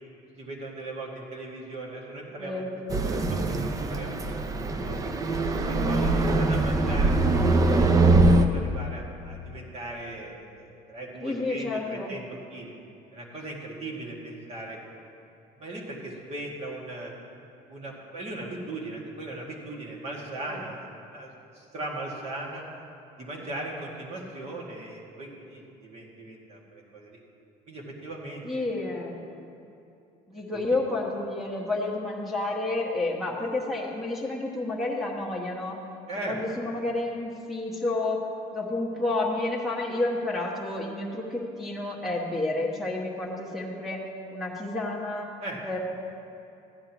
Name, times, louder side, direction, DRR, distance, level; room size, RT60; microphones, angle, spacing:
voice 1, 0.4-2.7 3.0-4.4 4.8-5.1 5.6-12.2 12.5-12.7 13.1-15.0 15.6-17.1 17.7-22.6 23.2-27.2 27.7-28.7 36.1-36.4 36.7-36.8 45.4-45.6, right 2 dB, 40° right, -2 dB, 2.1 m, -38 dB
voice 2, 2.4-2.7 11.2-12.1 20.5-20.6 28.4-29.4 30.3-35.8 36.2-38.2 38.5-44.0 44.3-45.3 45.6-45.8, left 2 dB, ahead, -6 dB, 1.2 m, -30 dB
sound 1, 2.9-8.5, right 2 dB, 20° right, 0.5 m, -22 dB
15.0 x 10.0 x 3.0 m, 2.7 s
cardioid pair, 135°, 16 cm